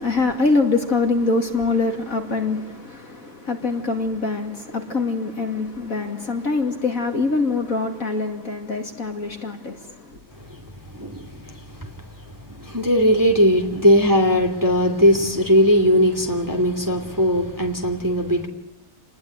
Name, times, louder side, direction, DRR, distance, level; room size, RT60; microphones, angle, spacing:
voice 1, 0.0-10.2, left 3 dB, 40° left, 2.7 m, -24 dB
voice 2, 10.4-18.5, equal, 10° right, 2.6 m, -19 dB
28.0 x 20.5 x 9.5 m
omnidirectional pair, 2.2 m